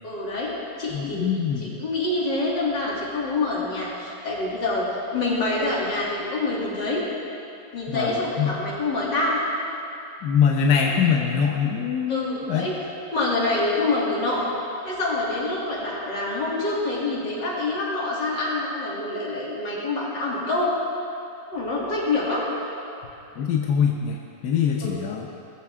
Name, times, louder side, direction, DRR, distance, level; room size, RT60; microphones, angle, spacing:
voice 1, 0.0-1.3 1.6-4.9 5.1-7.0 7.7-9.4 12.1-12.7 13.1-14.5 14.8-20.7 21.5-22.4 24.8-24.9, left 2 dB, 90° left, -5 dB, 3.6 m, -26 dB
voice 2, 0.9-1.7 7.9-8.5 10.2-12.7 23.4-25.3, left 7 dB, 70° left, 1 dB, 1.5 m, -23 dB
20.0 x 14.5 x 3.7 m, 2.7 s
omnidirectional pair, 1.9 m